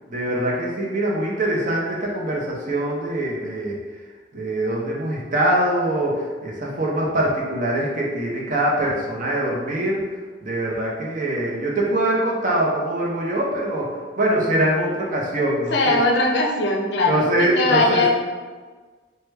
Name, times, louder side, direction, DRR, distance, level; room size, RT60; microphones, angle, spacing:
voice 1, 0.1-3.8 4.3-10.0 10.4-16.0 17.1-18.1, right 1 dB, 45° right, -3 dB, 0.6 m, -23 dB
voice 2, 15.7-18.1, left 2 dB, 65° left, 0 dB, 0.5 m, -20 dB
3.1 x 2.2 x 3.3 m, 1.4 s
head